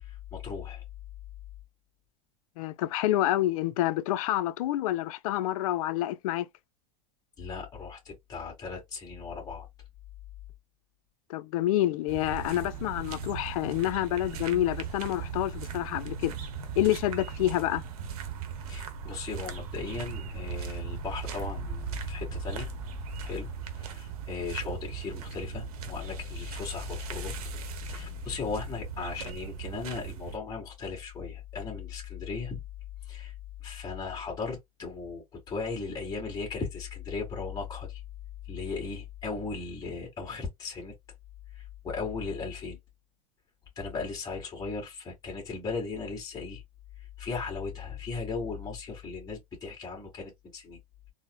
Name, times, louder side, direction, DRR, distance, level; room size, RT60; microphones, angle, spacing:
voice 1, 0.0-0.8 7.4-9.7 18.7-22.7 23.2-27.3 27.9-32.6 33.1-33.3 33.6-38.0 38.5-40.9 41.6-42.8 43.8-46.6 47.2-50.8, left 5 dB, 20° left, 1.7 m, -37 dB
voice 2, 2.6-6.5 11.3-16.3 16.8-17.8, left 14 dB, 65° left, 0.5 m, -28 dB
sound 1, 12.1-30.4, right 7 dB, 75° right, 0.9 m, -38 dB
3.9 x 2.0 x 2.2 m
hypercardioid pair, 115°, 19 cm